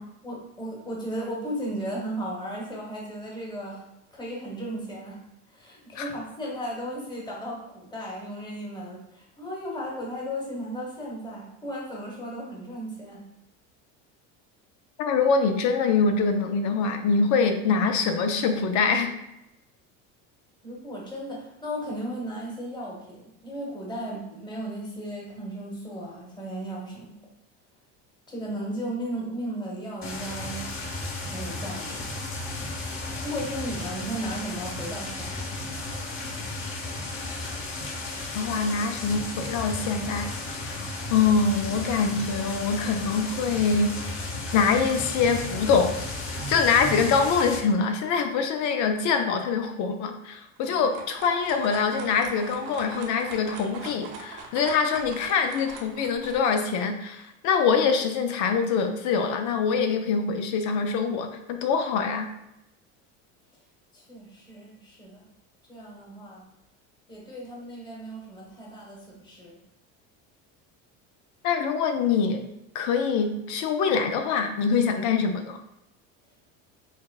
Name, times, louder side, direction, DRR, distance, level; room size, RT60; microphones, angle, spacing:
voice 1, 0.2-3.9 4.1-5.2 5.5-13.3 20.6-27.2 28.3-30.8 31.3-32.1 33.2-35.5 50.6-50.8 63.9-65.2 65.7-66.5 67.1-69.6, equal, 10° left, -3 dB, 1.2 m, -35 dB
voice 2, 15.0-19.1 38.3-43.9 44.5-45.9 46.5-62.3 71.4-72.4 72.7-75.6, left 5 dB, 55° left, 6 dB, 0.4 m, -24 dB
sound 1, 30.0-47.6, left 2 dB, 35° left, 1.1 m, -34 dB
sound 2, 50.6-56.4, right 4 dB, 55° right, 0.8 m, -42 dB
6.0 x 2.1 x 2.3 m, 0.89 s
supercardioid pair, 105°, 37 cm